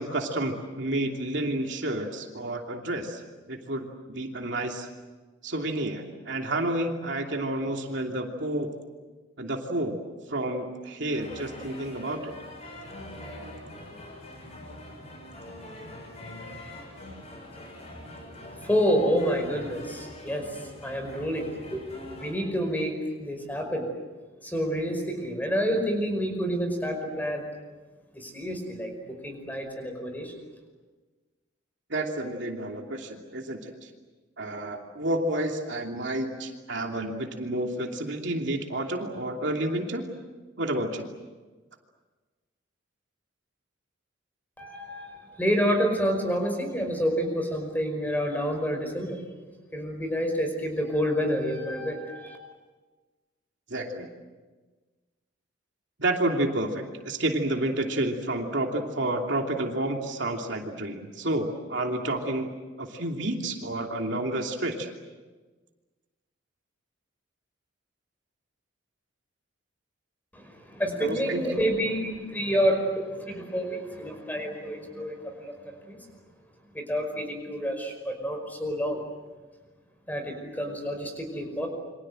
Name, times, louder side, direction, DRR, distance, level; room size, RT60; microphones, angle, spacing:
voice 1, 0.0-3.2 3.5-4.9 5.4-8.7 9.4-9.9 10.3-12.3 31.9-33.9 34.4-40.1 40.6-41.1 53.7-54.1 56.0-62.5 62.8-64.9 71.0-71.6, right 1 dB, 60° right, 2 dB, 2.9 m, -30 dB
sound 1, 11.1-22.3, left 1 dB, 35° left, 7.0 m, -43 dB
voice 2, 18.6-23.9 24.4-27.5 28.1-30.3 44.6-49.2 49.7-52.4 70.3-76.0 76.7-79.0 80.1-81.7, equal, 10° left, 4 dB, 5.3 m, -29 dB
28.5 x 25.0 x 7.8 m, 1.3 s
head